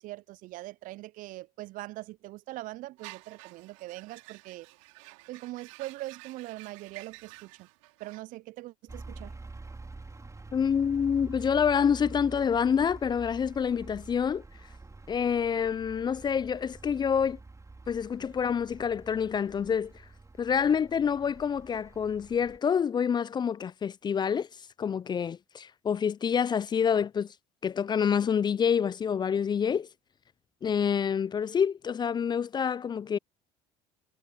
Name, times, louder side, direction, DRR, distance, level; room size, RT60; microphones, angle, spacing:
voice 1, 0.0-4.7 5.3-7.7 8.0-9.3, right 18 dB, 60° right, 0.4 m, -42 dB
sound 1, 3.0-8.2, right 26 dB, 80° right, 3.6 m, -51 dB
sound 2, 8.9-22.6, right 3 dB, 20° right, 4.4 m, -47 dB
voice 2, 10.5-14.4 15.1-17.4 17.9-19.9 20.4-24.5 24.8-27.3 27.6-29.9 30.6-33.2, left 7 dB, 30° left, 0.3 m, -27 dB
hypercardioid pair, 65°, 16 cm